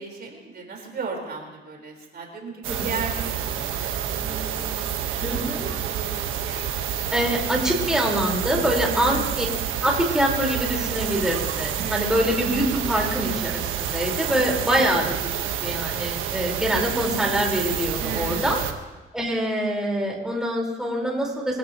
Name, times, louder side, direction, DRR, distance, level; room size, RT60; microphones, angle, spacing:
voice 1, 0.0-7.0 8.8-9.3 11.8-12.2 14.7-15.0 18.0-18.6, right 4 dB, 55° right, 0 dB, 4.4 m, -37 dB
sound 1, 2.6-18.7, right 9 dB, 90° right, 1.3 m, -28 dB
voice 2, 5.2-5.7 7.1-9.5 9.8-18.6 19.1-21.6, equal, 5° right, -2 dB, 4.5 m, -25 dB
25.0 x 16.0 x 3.0 m, 1.2 s
cardioid pair, 90°, 20 cm